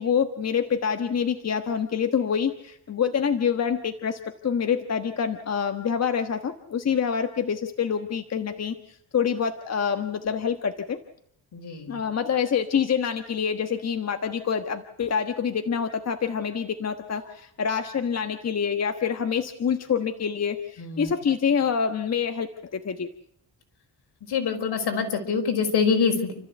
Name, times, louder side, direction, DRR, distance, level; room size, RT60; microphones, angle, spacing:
voice 1, 0.0-11.0 11.9-23.1, left 7 dB, 40° left, 7 dB, 1.3 m, -26 dB
voice 2, 11.5-12.0 20.8-21.1 24.3-26.3, left 5 dB, 75° left, 4 dB, 5.2 m, -25 dB
29.5 x 14.0 x 8.1 m, 0.71 s
wide cardioid pair, 145°, 40 cm